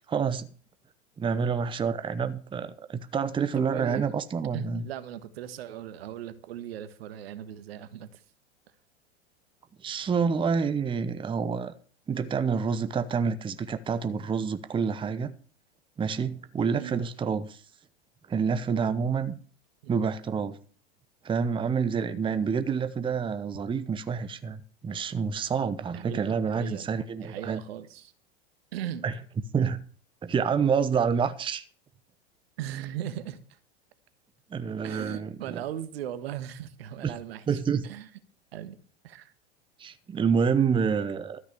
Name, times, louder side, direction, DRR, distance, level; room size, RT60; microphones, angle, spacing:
voice 1, 0.1-0.5 1.2-4.8 9.8-11.7 12.1-15.3 16.0-17.6 18.3-19.4 19.9-20.6 21.2-27.6 29.0-29.1 29.5-29.8 30.2-31.6 34.5-35.6 37.0-37.1 37.5-37.8 39.8-41.4, right 6 dB, 15° right, 0.8 m, -28 dB
voice 2, 3.5-4.1 4.5-8.2 16.8-17.0 19.8-19.9 25.9-28.1 28.7-29.0 32.6-33.6 34.8-38.1 38.5-38.8 39.0-39.3, right 11 dB, 70° right, 1.4 m, -38 dB
13.0 x 6.2 x 8.2 m
hypercardioid pair, 100°, 32 cm